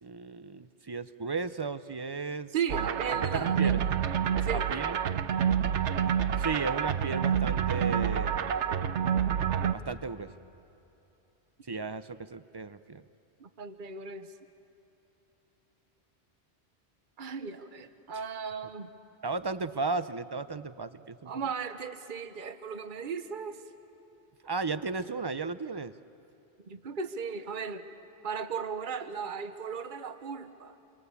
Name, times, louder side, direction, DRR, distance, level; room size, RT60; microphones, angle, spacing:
voice 1, 0.0-2.8 3.3-3.8 4.5-5.0 6.4-8.6 9.7-10.3 11.7-13.0 19.2-21.3 24.4-26.0, right 4 dB, 35° right, 13 dB, 0.4 m, -35 dB
voice 2, 2.5-3.8 4.4-4.7 13.4-14.3 17.2-18.9 21.2-23.6 26.6-27.9 28.2-30.8, right 6 dB, 50° right, 9 dB, 1.1 m, -36 dB
sound 1, 2.7-9.7, right 8 dB, 85° right, 1.1 m, -28 dB
26.5 x 24.5 x 8.3 m, 3.0 s
omnidirectional pair, 1.2 m